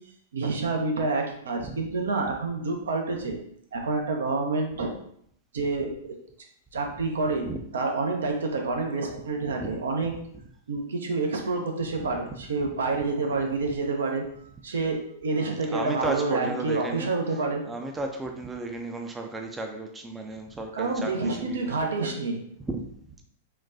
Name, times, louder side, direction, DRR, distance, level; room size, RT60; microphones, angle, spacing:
voice 1, 0.3-3.4 3.7-4.9 5.5-6.1 6.7-7.5 7.7-10.1 10.7-17.6 20.7-22.4, right 3 dB, 80° right, 3 dB, 0.6 m, -28 dB
voice 2, 7.0-7.6 9.6-9.8 10.0-10.1 12.0-12.7 15.7-21.9 22.6-22.9, right 2 dB, 15° right, 3 dB, 0.4 m, -35 dB
3.9 x 2.2 x 2.5 m, 0.68 s
hypercardioid pair, 110°, 0 cm